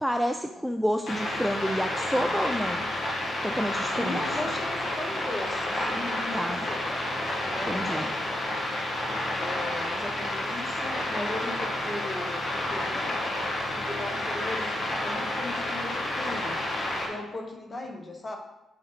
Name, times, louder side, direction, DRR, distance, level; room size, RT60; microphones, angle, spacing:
voice 1, 0.0-2.9 3.4-4.4 6.3-6.6 7.6-8.1, equal, ahead, 5 dB, 0.3 m, -29 dB
sound 1, 1.1-17.1, left 1 dB, 50° left, 1.6 m, -30 dB
voice 2, 4.0-7.0 7.4-8.2 9.3-13.2 13.8-14.7 15.0-16.6 17.0-18.4, left 2 dB, 25° left, 3 dB, 0.9 m, -37 dB
7.5 x 3.9 x 4.0 m, 0.94 s
cardioid pair, 130°, 0 cm